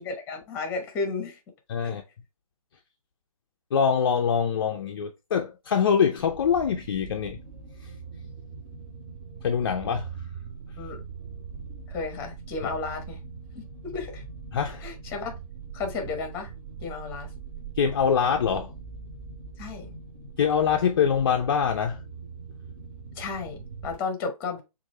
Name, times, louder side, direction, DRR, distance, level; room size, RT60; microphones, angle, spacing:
voice 1, 0.0-1.4 1.8-2.0 10.8-11.0 11.9-13.2 13.5-14.2 14.8-15.3 15.7-16.5 16.8-17.3 19.6-19.9 23.2-24.6, left 4 dB, 15° left, 0.9 m, -33 dB
voice 2, 1.7-2.0 3.7-7.4 9.4-10.1 12.6-12.7 14.5-14.9 17.8-18.7 20.4-22.0, left 7 dB, 40° left, 0.5 m, -24 dB
sound 1, 6.2-23.9, right 5 dB, 35° right, 2.9 m, -41 dB
6.3 x 2.5 x 3.1 m
hypercardioid pair, 150°, 19 cm